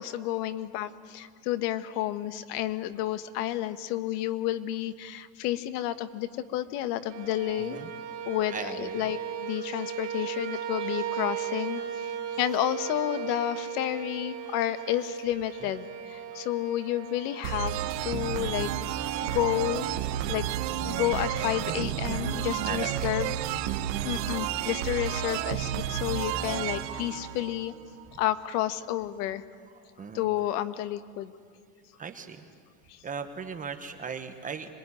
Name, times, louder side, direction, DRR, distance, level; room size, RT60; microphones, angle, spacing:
voice 1, 0.0-7.9 8.3-11.8 12.4-18.7 19.2-19.9 20.3-20.4 20.8-23.4 24.0-27.7 28.2-29.4 30.1-31.3 32.9-33.0, left 13 dB, 65° left, 12 dB, 1.5 m, -31 dB
sound 1, 7.1-21.1, right 8 dB, 30° right, 5.9 m, -37 dB
voice 2, 7.6-7.9 8.5-9.1 12.5-12.6 15.6-15.7 18.2-18.4 19.1-19.3 22.6-23.1 23.5-23.8 29.7-30.3 32.0-32.5 33.0-34.7, right 5 dB, 15° right, 7 dB, 1.1 m, -39 dB
sound 2, 17.4-28.0, right 11 dB, 80° right, 1.4 m, -31 dB
26.5 x 21.5 x 9.9 m, 2.2 s
supercardioid pair, 160°, 49 cm